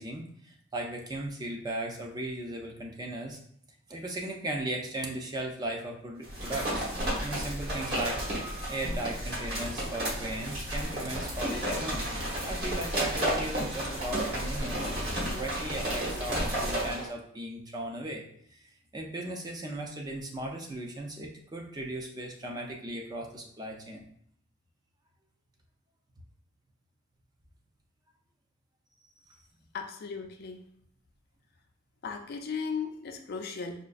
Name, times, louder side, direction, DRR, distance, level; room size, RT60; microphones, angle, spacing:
voice 1, 0.0-3.4 3.9-6.8 7.2-8.2 8.7-12.1 12.4-18.2 18.5-24.1, right 1 dB, 20° right, 1 dB, 0.4 m, -37 dB
sound 1, 6.2-17.0, equal, 50° right, 1.2 m, -32 dB
voice 2, 29.7-30.7 32.0-33.8, left 5 dB, 50° left, 4 dB, 0.4 m, -36 dB
5.0 x 2.3 x 2.4 m, 0.66 s
head